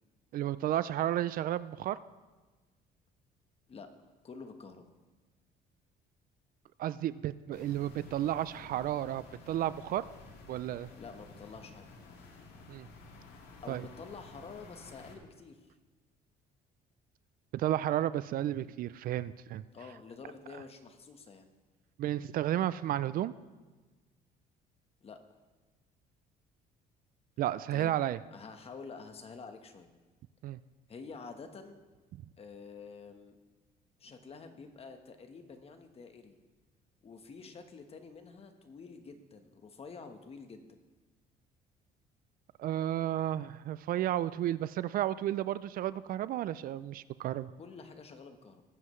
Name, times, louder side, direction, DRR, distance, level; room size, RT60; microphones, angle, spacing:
voice 1, 0.3-2.0 6.8-10.0 10.5-10.9 12.7-12.9 13.7-13.8 17.5-19.6 22.0-23.3 27.4-28.2 30.4-30.6 42.6-47.5, right 12 dB, 60° right, 16 dB, 0.4 m, -32 dB
voice 2, 4.2-4.9 11.0-11.8 13.6-15.6 19.7-21.5 25.0-25.2 27.7-27.9 28.3-29.9 30.9-31.8 32.4-33.4 34.0-36.4 37.0-40.8 47.6-48.6, left 4 dB, 35° left, 6 dB, 1.2 m, -48 dB
sound 1, 7.5-15.2, left 3 dB, 80° left, 1.9 m, -52 dB
19.0 x 7.7 x 3.2 m, 1.3 s
cardioid pair, 110°, 17 cm